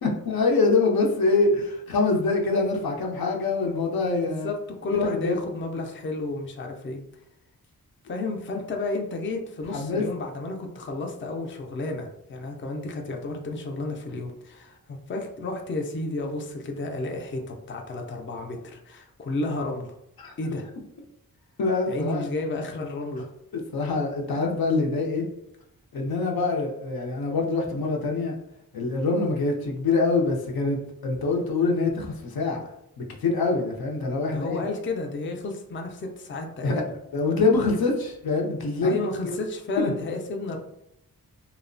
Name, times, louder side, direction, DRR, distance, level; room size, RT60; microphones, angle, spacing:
voice 1, 0.0-4.5 5.0-5.3 9.7-10.0 20.2-20.6 21.6-22.2 23.5-25.3 25.9-28.3 28.7-30.8 31.0-32.6 33.0-34.6 36.6-36.8 37.1-39.3 39.8-39.9, left 3 dB, 80° left, 0 dB, 0.6 m, -25 dB
voice 2, 4.2-4.6 4.8-7.0 8.1-19.9 20.4-20.7 21.9-23.3 34.3-36.9 38.8-40.6, left 2 dB, 35° left, 2 dB, 0.4 m, -32 dB
2.8 x 2.0 x 2.5 m, 0.80 s
wide cardioid pair, 75°, 36 cm